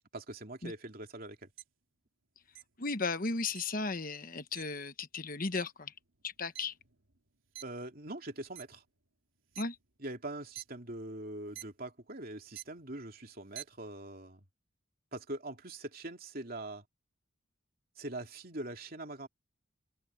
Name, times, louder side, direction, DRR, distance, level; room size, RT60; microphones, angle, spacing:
voice 1, 0.1-1.5 7.6-8.8 10.0-14.4 15.1-16.8 18.0-19.3, right 2 dB, 45° right, 3.0 m, -43 dB
sound 1, 1.6-1.7 2.5-2.6 3.5-3.6 4.5-4.6 5.5-5.6 6.1-7.2 7.5-7.8 8.4-8.8 9.5-9.6 10.4-10.6 11.5-11.6 12.5-12.8 13.4-13.7, right 13 dB, 85° right, 2.8 m, -46 dB
voice 2, 2.8-5.9 6.2-6.7 9.6-9.7, left 3 dB, 45° left, 1.2 m, -35 dB
head